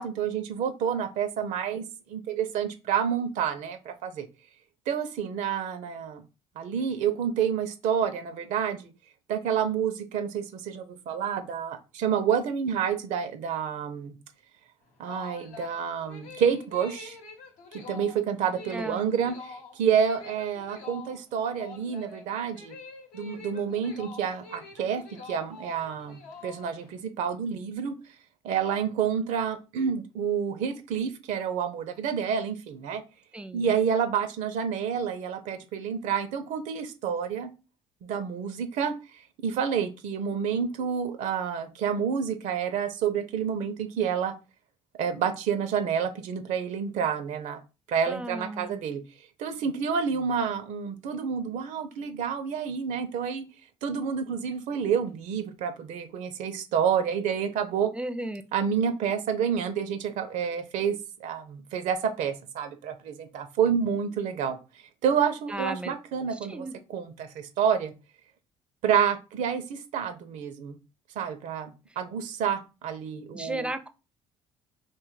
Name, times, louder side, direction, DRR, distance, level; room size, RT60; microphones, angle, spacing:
voice 1, 0.0-4.3 4.9-6.2 6.6-8.9 9.3-14.1 15.0-17.2 17.7-22.8 23.1-28.0 28.4-33.0 33.5-37.5 38.0-44.3 44.9-47.6 47.9-49.0 49.4-53.5 53.8-57.9 58.5-64.6 65.0-67.9 68.8-70.8 71.2-73.7, right 7 dB, 70° right, 10 dB, 0.5 m, -29 dB
sound 1, 14.8-26.9, left 4 dB, 80° left, 0.9 m, -46 dB
voice 2, 18.7-19.2 33.3-33.8 48.1-48.8 58.0-58.4 65.5-65.9 66.5-66.7 73.3-73.9, right 1 dB, 10° right, 9 dB, 0.4 m, -34 dB
2.5 x 2.3 x 3.9 m, 0.29 s
supercardioid pair, 70°, 13 cm